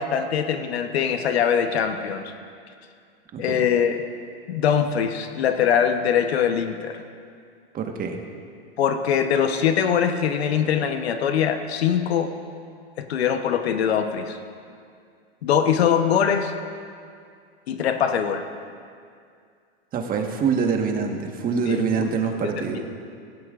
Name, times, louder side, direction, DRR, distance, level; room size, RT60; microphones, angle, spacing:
voice 1, 0.0-2.3 3.4-4.0 4.5-7.0 8.8-12.3 13.0-14.4 15.4-16.5 17.7-18.4 21.7-22.1 22.7-22.8, left 8 dB, 80° left, 7 dB, 1.1 m, -22 dB
voice 2, 3.3-3.6 7.7-8.2 19.9-22.8, right 5 dB, 30° right, 3 dB, 1.5 m, -25 dB
17.5 x 15.5 x 2.5 m, 2.3 s
hypercardioid pair, 125°, 31 cm